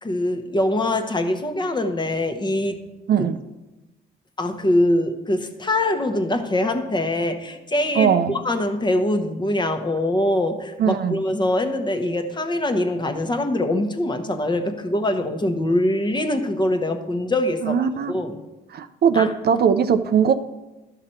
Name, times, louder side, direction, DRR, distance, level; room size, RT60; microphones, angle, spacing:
voice 1, 0.0-2.8 4.4-18.4 19.1-19.3, left 1 dB, 20° left, 6 dB, 1.0 m, -23 dB
voice 2, 3.1-3.4 8.0-8.3 10.8-11.2 17.6-18.1 18.7-20.3, right 7 dB, 55° right, 10 dB, 0.5 m, -19 dB
11.5 x 5.9 x 4.4 m, 1.0 s
cardioid pair, 90°, 20 cm